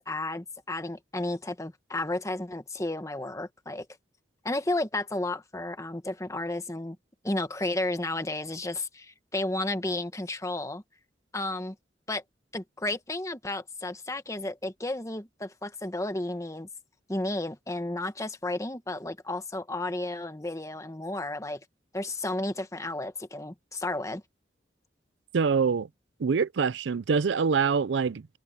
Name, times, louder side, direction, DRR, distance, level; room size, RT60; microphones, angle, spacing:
voice 1, 0.0-3.9 4.4-7.0 7.2-10.8 11.3-11.7 12.1-12.2 12.5-16.7 17.1-21.6 21.9-24.2, left 2 dB, 15° left, 1.2 m, -32 dB
voice 2, 25.3-25.9 26.2-28.4, right 5 dB, 85° right, 0.5 m, -25 dB
head